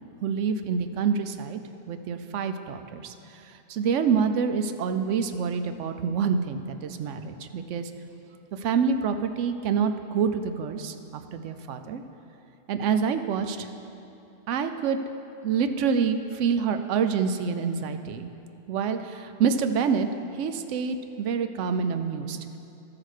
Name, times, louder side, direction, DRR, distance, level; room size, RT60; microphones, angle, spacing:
voice 1, 0.2-1.6 1.9-7.9 8.5-12.0 12.7-13.7 14.5-15.0 15.4-18.3 18.7-22.4, right 6 dB, 75° right, 8 dB, 0.9 m, -27 dB
13.5 x 4.8 x 6.4 m, 2.8 s
omnidirectional pair, 1.3 m